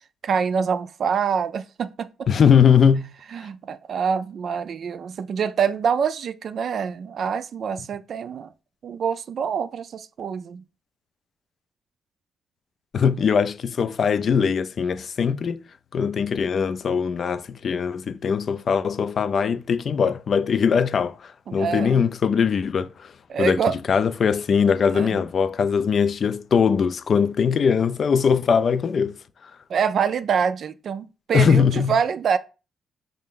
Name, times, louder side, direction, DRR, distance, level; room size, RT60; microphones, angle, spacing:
voice 1, 0.2-2.3 3.3-8.5 8.8-10.6 21.5-22.0 23.3-23.8 24.9-25.2 29.7-32.4, right 6 dB, 60° right, 0.3 m, -25 dB
voice 2, 2.3-3.1 12.9-15.6 15.9-23.1 23.4-23.6 23.9-29.1 29.4-29.5 31.3-31.9, left 6 dB, 55° left, 0.3 m, -21 dB
5.4 x 2.6 x 3.7 m
cardioid pair, 90°, 0 cm